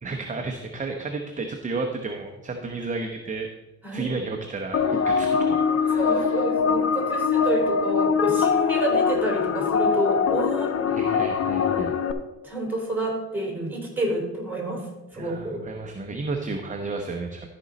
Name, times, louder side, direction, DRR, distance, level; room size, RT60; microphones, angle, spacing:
voice 1, 0.0-3.5 3.9-6.4 10.9-12.0 15.1-17.5, right 3 dB, 25° right, 3 dB, 0.9 m, -32 dB
voice 2, 3.8-4.2 5.9-10.7 12.4-15.6, right 1 dB, 5° right, -1 dB, 3.8 m, -29 dB
sound 1, 4.7-12.1, left 6 dB, 50° left, 0.8 m, -23 dB
13.0 x 5.4 x 4.1 m, 1.0 s
cardioid pair, 90°, 30 cm